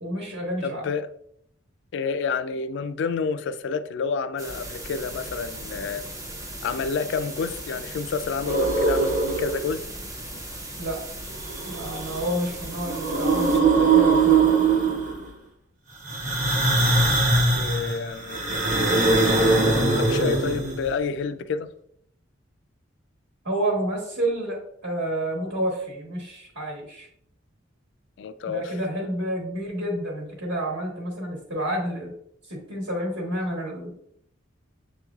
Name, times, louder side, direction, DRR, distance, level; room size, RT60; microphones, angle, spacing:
voice 1, 0.0-0.9 10.8-11.0 11.7-14.5 23.4-27.1 28.5-32.1 32.5-33.9, right 1 dB, 65° right, -3 dB, 1.2 m, -29 dB
voice 2, 0.6-1.1 1.9-6.0 6.6-9.8 17.6-18.4 20.0-21.7 28.2-28.7, left 5 dB, 60° left, 12 dB, 0.3 m, -29 dB
sound 1, 4.4-13.6, right 1 dB, 15° right, 0.6 m, -37 dB
sound 2, 8.4-9.7 11.4-12.4 12.7-15.3 16.0-20.9, right 3 dB, 40° right, 1.0 m, -21 dB
6.9 x 3.1 x 2.3 m, 0.69 s
head